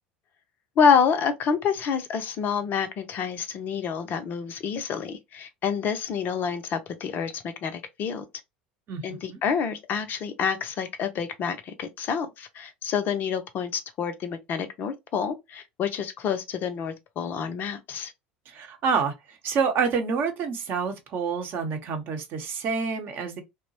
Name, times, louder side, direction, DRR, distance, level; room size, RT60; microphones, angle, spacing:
voice 1, 0.8-8.2 9.0-18.1, left 6 dB, 40° left, 0.5 m, -27 dB
voice 2, 8.9-9.4 18.5-23.4, right 5 dB, 45° right, 0.8 m, -28 dB
2.9 x 2.1 x 2.7 m
figure-of-eight pair, 70°, 5 cm